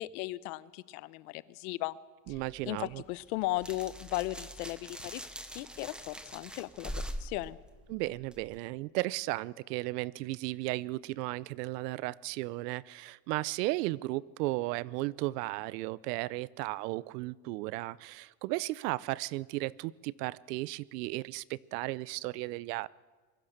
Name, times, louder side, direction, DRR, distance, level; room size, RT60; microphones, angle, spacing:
voice 1, 0.0-2.0 2.7-5.2 5.5-6.9 7.2-7.6, left 18 dB, 65° left, 17 dB, 0.9 m, -36 dB
sound 1, 2.3-8.6, equal, ahead, 0.7 m, -44 dB
voice 2, 2.3-3.0 7.9-22.9, right 19 dB, 80° right, 21 dB, 0.8 m, -35 dB
25.0 x 22.5 x 6.7 m, 1.3 s
cardioid pair, 170°, 48 cm